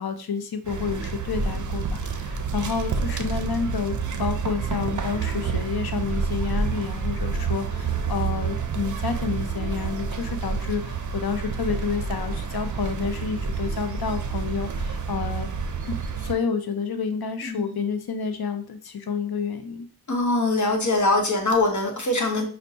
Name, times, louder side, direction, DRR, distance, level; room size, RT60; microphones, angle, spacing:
voice 1, 0.0-15.5 15.8-19.9, left 6 dB, 70° left, 7 dB, 0.6 m, -29 dB
sound 1, 0.6-16.3, right 5 dB, 50° right, 0.5 m, -28 dB
voice 2, 17.4-17.8 20.1-22.5, left 2 dB, 50° left, 2 dB, 1.0 m, -23 dB
5.2 x 2.1 x 2.7 m, 0.41 s
wide cardioid pair, 45°, 39 cm